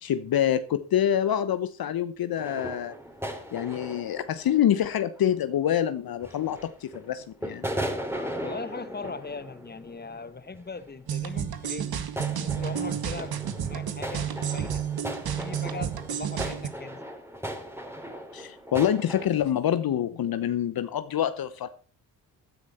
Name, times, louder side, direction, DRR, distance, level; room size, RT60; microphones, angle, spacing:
voice 1, 0.0-2.9 3.5-7.7 18.3-21.7, left 10 dB, 55° left, 1.0 m, -26 dB
sound 1, 2.4-5.3 6.2-7.1 7.4-10.3 10.5-11.1 12.2-19.3, equal, 5° right, 3.3 m, -37 dB
voice 2, 8.1-14.9 15.4-17.0, left 4 dB, 25° left, 1.4 m, -40 dB
sound 2, 11.1-16.7, right 8 dB, 55° right, 1.7 m, -31 dB
16.5 x 9.9 x 4.3 m
hypercardioid pair, 45°, 42 cm